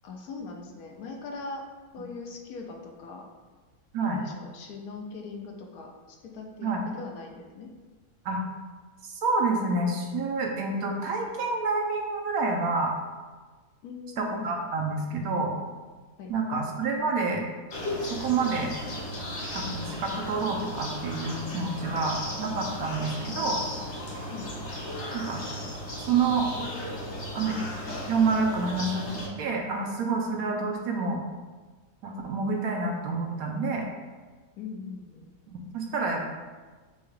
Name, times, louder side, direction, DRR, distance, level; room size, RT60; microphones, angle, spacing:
voice 1, 0.0-1.6 1.9-3.3 4.0-5.9 6.2-7.7 13.8-14.6 16.2-16.3 24.3-24.5 34.6-35.3, left 4 dB, 70° left, 1 dB, 1.0 m, -40 dB
voice 2, 9.0-12.9 14.2-15.5 16.3-17.4 18.0-18.7 19.5-23.6 25.1-25.4 26.0-26.5 27.3-27.6 28.1-31.2 32.0-33.8 35.5-36.2, right 3 dB, 70° right, 2 dB, 1.0 m, -28 dB
sound 1, 17.7-29.3, left 1 dB, 50° left, 1.1 m, -35 dB
6.8 x 2.3 x 3.2 m, 1.3 s
omnidirectional pair, 1.7 m